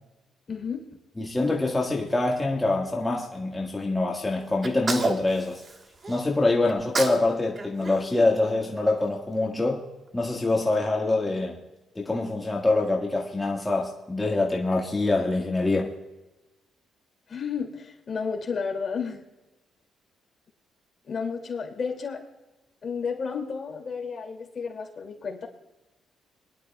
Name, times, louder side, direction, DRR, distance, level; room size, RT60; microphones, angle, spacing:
voice 1, 0.5-0.8 17.3-19.2 21.0-22.2 22.8-25.5, left 5 dB, 45° left, 2.6 m, -32 dB
voice 2, 1.2-5.6 6.1-9.8 10.1-11.6 12.0-15.9, left 2 dB, 15° left, 1.7 m, -25 dB
Sneeze, 4.6-6.2 6.7-7.3 7.6-9.0, right 3 dB, 35° right, 1.4 m, -31 dB
23.0 x 11.5 x 2.4 m
cardioid pair, 90°, 0 cm